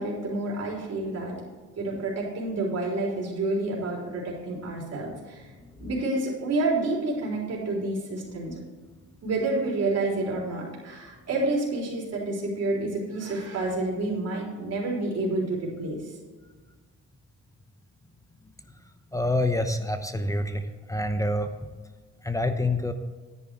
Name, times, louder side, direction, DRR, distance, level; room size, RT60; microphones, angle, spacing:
voice 1, 0.0-1.3 1.8-5.5 5.8-8.6 9.2-16.0, right 2 dB, 55° right, -4 dB, 3.9 m, -29 dB
voice 2, 19.1-21.5 22.2-22.9, left 1 dB, 10° left, 8 dB, 0.8 m, -27 dB
10.0 x 9.6 x 4.7 m, 1.4 s
cardioid pair, 90°, 30 cm